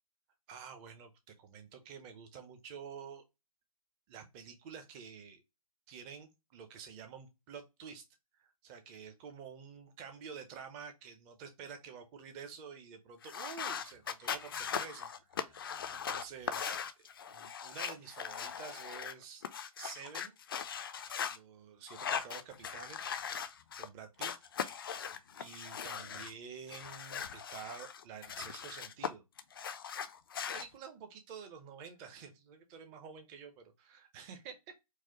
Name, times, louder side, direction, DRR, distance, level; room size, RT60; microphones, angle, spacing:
voice 1, 0.5-3.2 4.1-5.4 5.9-8.0 8.4-19.4 19.8-20.4 21.3-23.1 23.7-24.3 25.0-29.2 30.5-34.6, right 6 dB, 15° right, 0.5 m, -49 dB
sound 1, 13.2-21.4 21.9-23.9 24.2-26.3 26.7-29.1 29.4-30.6, left 7 dB, 40° left, 0.4 m, -40 dB
4.6 x 2.0 x 2.8 m
figure-of-eight pair, 130°, 19 cm